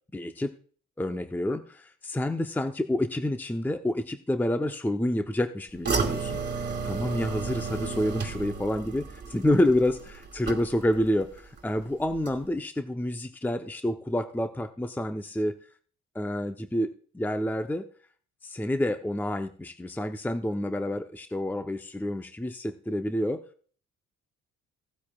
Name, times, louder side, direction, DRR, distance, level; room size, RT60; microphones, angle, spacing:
voice 1, 0.1-0.5 1.0-15.5 16.1-17.9 18.4-23.7, left 1 dB, 5° left, 7 dB, 0.7 m, -28 dB
sound 1, 5.8-11.1 11.4-11.8 12.2-12.3, right 5 dB, 35° right, 2.2 m, -32 dB
17.0 x 8.4 x 2.4 m, 0.43 s
cardioid pair, 90°, 30 cm